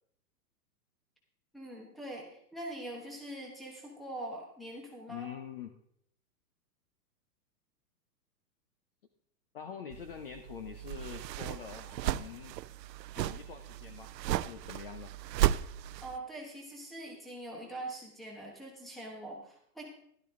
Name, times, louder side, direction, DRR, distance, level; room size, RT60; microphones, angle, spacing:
voice 1, 1.5-5.3 16.0-19.9, right 1 dB, ahead, 0 dB, 1.0 m, -43 dB
voice 2, 5.1-5.7 9.5-12.6 13.2-15.1, left 8 dB, 35° left, 8 dB, 0.6 m, -45 dB
sound 1, 9.9-16.2, right 13 dB, 85° right, 0.6 m, -35 dB
12.0 x 11.5 x 3.6 m, 0.70 s
hypercardioid pair, 170°, 49 cm